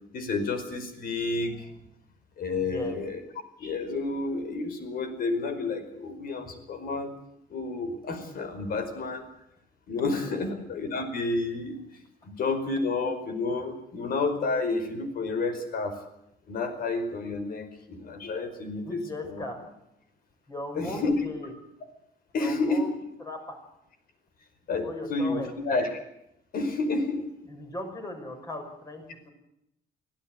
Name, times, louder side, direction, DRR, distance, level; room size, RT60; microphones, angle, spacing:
voice 1, 0.1-1.7 2.4-3.2 3.6-7.1 7.5-9.2 9.9-11.8 12.2-16.0 16.5-19.0 19.3-19.4 20.7-21.1 22.3-22.9 24.7-25.9 26.5-27.3, left 3 dB, 55° left, 9 dB, 5.1 m, -30 dB
voice 2, 2.6-3.0 10.2-10.5 18.8-19.6 20.5-21.5 22.3-23.6 24.8-25.5 27.5-29.3, left 2 dB, 20° left, 4 dB, 6.3 m, -38 dB
24.5 x 16.5 x 7.8 m, 0.80 s
cardioid pair, 155°, 18 cm